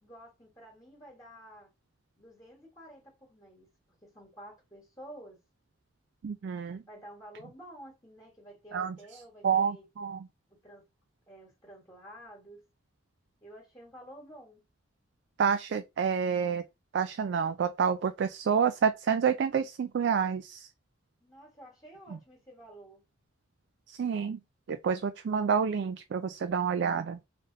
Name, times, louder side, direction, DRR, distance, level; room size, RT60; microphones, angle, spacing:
voice 1, 0.0-1.7 2.2-3.7 4.0-5.4 6.9-9.9 10.6-10.8 11.3-12.6 13.4-14.6 21.2-23.0, right 1 dB, 20° left, 1.3 m, -50 dB
voice 2, 6.2-6.8 8.7-9.0 9.4-10.3 15.4-16.6 16.9-20.7 23.9-24.4 24.7-27.2, right 6 dB, 60° right, 0.3 m, -28 dB
3.3 x 2.8 x 3.8 m
head